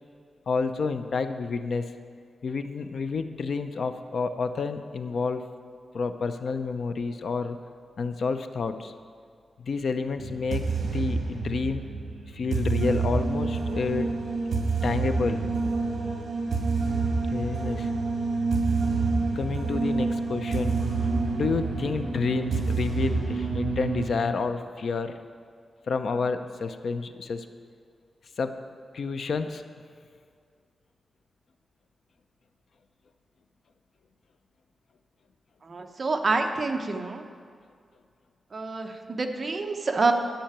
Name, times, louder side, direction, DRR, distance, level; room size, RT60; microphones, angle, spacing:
voice 1, 0.5-1.9 2.4-5.5 5.9-7.6 8.0-8.9 9.6-11.8 12.3-14.1 14.8-15.5 17.3-17.9 19.4-20.8 21.4-25.2 25.9-27.5 28.4-28.6 28.9-29.6, left 4 dB, 60° left, 9 dB, 0.6 m, -29 dB
sound 1, 10.2-24.1, right 4 dB, 55° right, 1.9 m, -28 dB
voice 2, 35.6-37.2 38.5-40.1, right 3 dB, 35° right, 4 dB, 0.8 m, -27 dB
11.5 x 5.6 x 8.9 m, 2.1 s
wide cardioid pair, 170°, 0 cm